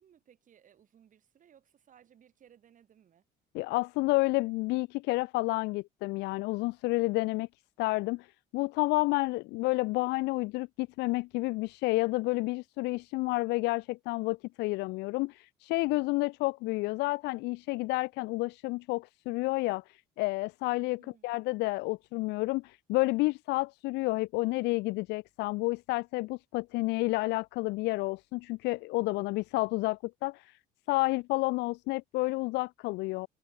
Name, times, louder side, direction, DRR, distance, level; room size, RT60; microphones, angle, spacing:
voice 1, 0.0-3.3 21.0-21.3, right 9 dB, 50° right, 7.1 m, -62 dB
voice 2, 3.5-7.5 7.8-30.6 30.9-33.3, left 22 dB, 85° left, 0.4 m, -30 dB
cardioid pair, 110°, 17 cm